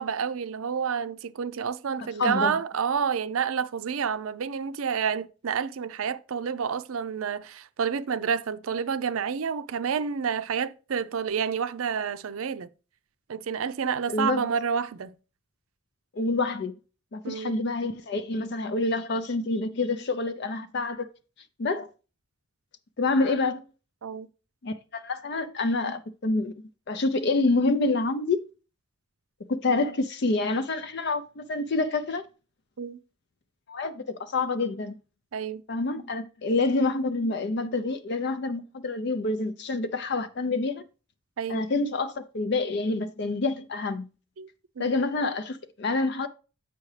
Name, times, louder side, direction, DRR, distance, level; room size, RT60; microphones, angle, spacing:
voice 1, 0.0-12.7 13.3-15.1 17.2-17.6 24.0-24.3 32.8-33.0 35.3-35.6 41.4-41.6 44.4-44.5 44.8-45.0, right 6 dB, 80° right, 0.5 m, -29 dB
voice 2, 2.2-2.5 14.1-14.4 16.1-16.7 17.1-21.1 21.6-21.9 23.0-23.6 24.6-26.5 26.9-28.4 29.5-32.2 33.7-34.9 35.7-40.8 41.5-44.0 44.8-46.3, left 3 dB, 50° left, 0.4 m, -27 dB
8.3 x 5.6 x 3.2 m
head